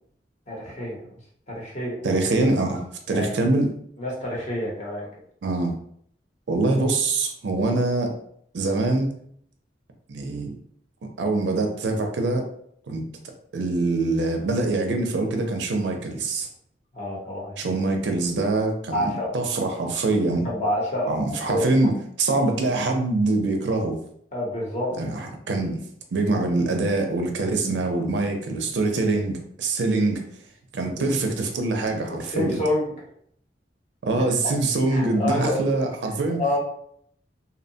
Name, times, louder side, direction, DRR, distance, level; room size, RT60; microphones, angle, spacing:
voice 1, 0.5-1.1 1.5-1.9 3.1-3.4 4.0-5.1 16.9-17.7 18.9-19.4 20.4-21.9 24.3-25.0 31.0-31.1 32.1-32.9 34.9-35.8 36.4-36.6, left 1 dB, 40° left, -4 dB, 0.8 m, -28 dB
voice 2, 2.0-3.7 5.4-5.7 6.5-8.1 8.5-9.1 10.1-10.6 11.0-12.5 12.9-13.0 13.5-16.5 17.6-20.5 21.1-24.0 25.0-25.8 26.1-30.2 30.7-32.6 34.0-36.4, right 2 dB, 80° right, 3 dB, 0.5 m, -24 dB
2.8 x 2.1 x 2.6 m, 0.66 s
head